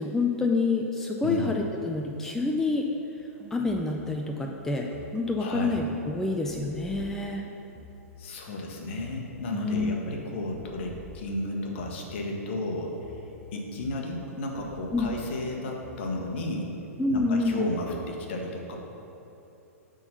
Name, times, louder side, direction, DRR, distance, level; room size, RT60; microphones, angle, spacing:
voice 1, 0.0-2.9 3.5-7.4 9.5-10.1 14.9-15.1 17.0-17.6, left 3 dB, 5° left, 1 dB, 0.4 m, -27 dB
sound 1, 3.2-4.1 4.4-8.2 8.5-12.2 12.5-16.3 16.6-18.0, left 1 dB, 15° right, 1.1 m, -48 dB
voice 2, 5.4-5.8 8.2-13.2 13.5-16.7 17.1-18.8, left 2 dB, 50° left, 1 dB, 1.2 m, -33 dB
9.7 x 3.8 x 5.6 m, 2.9 s
figure-of-eight pair, 105°, 8 cm